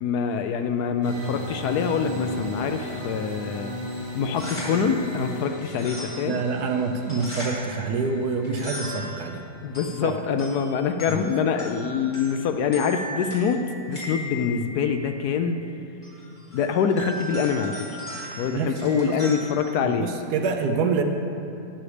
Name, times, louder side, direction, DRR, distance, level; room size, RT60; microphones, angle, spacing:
voice 1, 0.0-3.7 4.1-6.4 9.6-13.6 13.9-15.6 16.5-18.0 18.4-20.1, left 6 dB, 70° left, 7 dB, 1.0 m, -25 dB
sound 1, 1.0-9.8, left 1 dB, 15° right, 2.3 m, -35 dB
sound 2, 4.2-20.4, equal, 25° left, 2.6 m, -39 dB
voice 2, 6.2-9.4 10.0-10.2 11.1-11.2 18.5-19.2 19.8-21.0, right 4 dB, 70° right, 5 dB, 1.2 m, -26 dB
12.0 x 9.9 x 3.3 m, 2.8 s
omnidirectional pair, 1.9 m